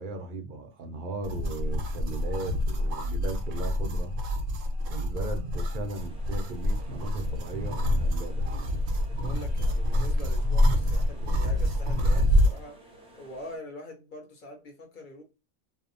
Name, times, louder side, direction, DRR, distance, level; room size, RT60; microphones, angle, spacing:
voice 1, 0.0-4.1 4.9-8.6, right 2 dB, 60° right, 0.5 m, -37 dB
sound 1, 1.2-12.6, left 1 dB, 90° right, 1.0 m, -27 dB
sound 2, 6.0-13.6, right 1 dB, 10° right, 0.4 m, -53 dB
voice 2, 9.1-12.8 13.2-15.2, left 2 dB, 45° left, 0.8 m, -44 dB
2.8 x 2.0 x 2.5 m
omnidirectional pair, 1.3 m